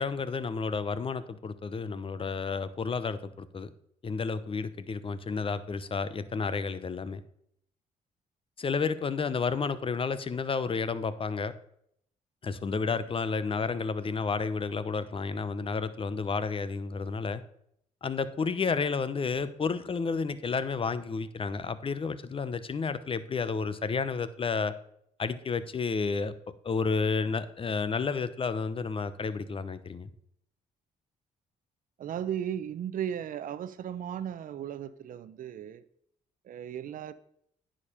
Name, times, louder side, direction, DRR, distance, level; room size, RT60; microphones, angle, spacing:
voice 1, 0.0-3.7 4.0-7.2 8.6-11.5 12.4-17.4 18.0-24.7 25.2-26.3 26.6-30.1, left 4 dB, 35° left, 14 dB, 0.8 m, -31 dB
voice 2, 32.0-35.8 36.4-37.1, right 9 dB, 65° right, 14 dB, 0.7 m, -36 dB
9.7 x 5.1 x 5.6 m, 0.70 s
supercardioid pair, 65°, 15 cm